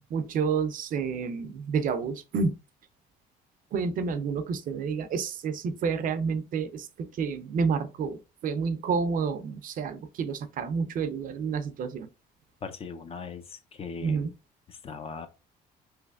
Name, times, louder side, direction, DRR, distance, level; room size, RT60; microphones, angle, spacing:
voice 1, 0.1-2.6 3.7-12.1 14.0-14.3, right 5 dB, 55° right, 0.5 m, -29 dB
voice 2, 12.6-14.3 14.7-15.3, left 5 dB, 35° left, 0.5 m, -39 dB
3.2 x 3.1 x 2.4 m
cardioid pair, 110°, 17 cm